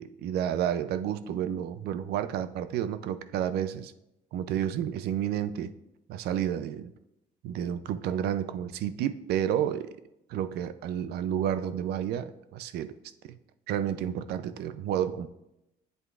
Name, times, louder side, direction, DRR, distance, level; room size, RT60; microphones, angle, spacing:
voice 1, 0.0-3.9 4.3-5.7 6.1-6.9 7.4-9.9 10.3-12.9 13.2-13.4 13.7-15.3, right 10 dB, 70° right, 13 dB, 0.4 m, -30 dB
7.9 x 7.7 x 2.4 m, 0.88 s
cardioid pair, 110°, 17 cm